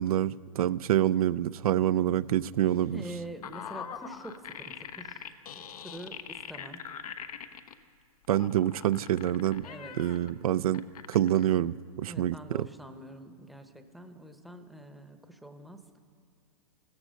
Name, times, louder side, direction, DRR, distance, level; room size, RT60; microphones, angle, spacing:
voice 1, 0.0-3.0 8.3-9.7 10.0-12.7, right 11 dB, 80° right, 15 dB, 0.5 m, -27 dB
sound 1, 2.7-7.7 8.2-10.3 10.7-11.4, left 8 dB, 80° left, 1.1 m, -42 dB
voice 2, 2.9-5.3 5.5-6.8 9.6-10.0 12.0-16.0, right 1 dB, ahead, 6 dB, 0.8 m, -45 dB
15.5 x 14.5 x 6.4 m, 2.3 s
hypercardioid pair, 145°, 19 cm